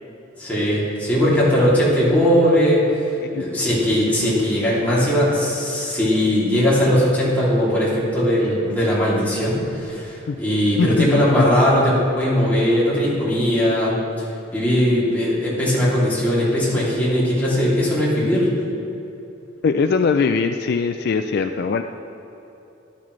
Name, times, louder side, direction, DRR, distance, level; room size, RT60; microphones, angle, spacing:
voice 1, 0.4-3.0 3.3-14.3 14.5-18.5, equal, 10° left, -9 dB, 2.7 m, -19 dB
voice 2, 19.6-21.8, left 5 dB, 55° left, 7 dB, 0.3 m, -21 dB
12.5 x 12.0 x 3.2 m, 3.0 s
head